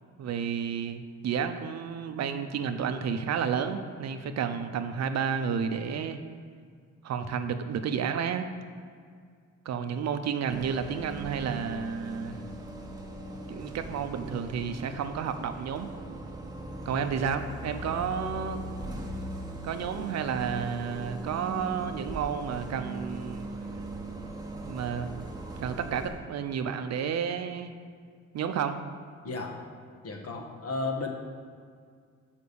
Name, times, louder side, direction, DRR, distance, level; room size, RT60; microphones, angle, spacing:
voice 1, 0.2-6.2 7.0-8.5 9.6-12.4 13.5-15.9 16.9-18.6 19.6-23.5 24.6-25.1 25.6-27.7 28.3-28.8, right 7 dB, 60° right, 8 dB, 0.7 m, -31 dB
Bus, 10.5-26.1, right 1 dB, 15° right, 1.3 m, -39 dB
voice 2, 29.2-29.6 30.0-31.1, left 3 dB, 50° left, 1 dB, 1.5 m, -33 dB
6.7 x 5.2 x 6.9 m, 2.1 s
cardioid pair, 90°, 30 cm